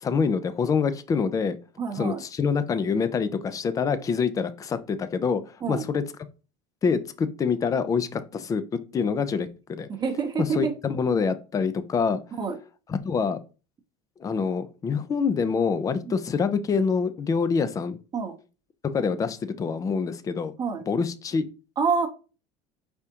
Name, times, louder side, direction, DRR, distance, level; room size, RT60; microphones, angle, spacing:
voice 1, 0.0-1.6 1.9-6.0 6.8-8.6 8.9-9.9 10.4-12.2 12.9-13.4 14.2-18.0 18.9-20.5 20.9-21.4, left 5 dB, 25° left, 12 dB, 0.4 m, -26 dB
voice 2, 1.8-2.2 5.6-5.8 9.9-10.7 12.4-12.6 16.0-16.2 18.1-18.3 20.6-20.8 21.8-22.1, right 5 dB, 25° right, 3 dB, 0.8 m, -27 dB
4.9 x 3.5 x 2.8 m, 0.33 s
cardioid pair, 125°, 15 cm